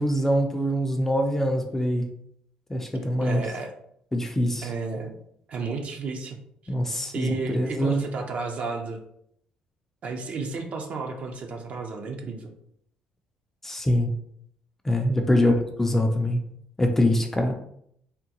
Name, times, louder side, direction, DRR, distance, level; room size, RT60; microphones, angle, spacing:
voice 1, 0.0-2.1 2.7-3.4 4.1-4.7 6.7-8.0 13.6-14.1 14.8-15.5 15.8-16.4 16.8-17.5, equal, 10° left, 3 dB, 0.5 m, -24 dB
voice 2, 3.2-3.7 4.6-5.1 5.5-6.4 7.1-9.0 10.0-12.5 15.3-15.6, right 4 dB, 50° right, 3 dB, 0.6 m, -32 dB
3.6 x 2.2 x 2.8 m, 0.70 s
cardioid pair, 95°, 3 cm